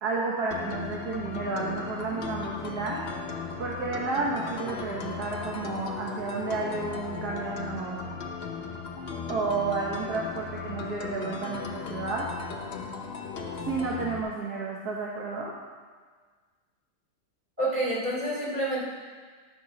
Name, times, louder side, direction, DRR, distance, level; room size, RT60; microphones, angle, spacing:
voice 1, 0.0-3.0 3.6-8.0 9.3-12.3 13.6-15.5, right 3 dB, 55° right, -3 dB, 1.5 m, -31 dB
sound 1, 0.5-14.2, left 5 dB, 85° left, 0.5 m, -37 dB
voice 2, 17.6-18.8, right 1 dB, 20° right, -6 dB, 2.9 m, -28 dB
10.5 x 6.8 x 5.1 m, 1.5 s
omnidirectional pair, 2.3 m